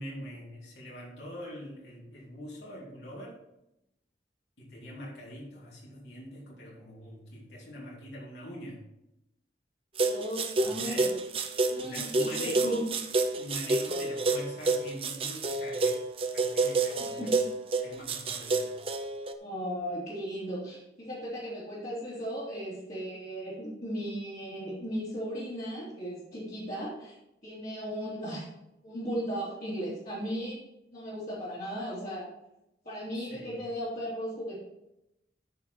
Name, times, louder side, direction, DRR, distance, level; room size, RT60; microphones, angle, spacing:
voice 1, 0.0-3.4 4.6-8.8 10.6-11.2 11.8-12.9 13.3-16.0 16.3-17.3 17.8-18.8 33.1-33.6, equal, 80° left, -4 dB, 2.8 m, -43 dB
voice 2, 10.0-10.9 11.7-12.8 17.0-17.3 19.4-27.1 27.4-28.5 28.8-30.6 30.9-32.3 32.8-34.6, equal, 45° left, -11 dB, 3.3 m, -36 dB
sound 1, 10.0-19.3, right 3 dB, 30° right, 0.7 m, -29 dB
13.5 x 4.8 x 4.6 m, 0.86 s
head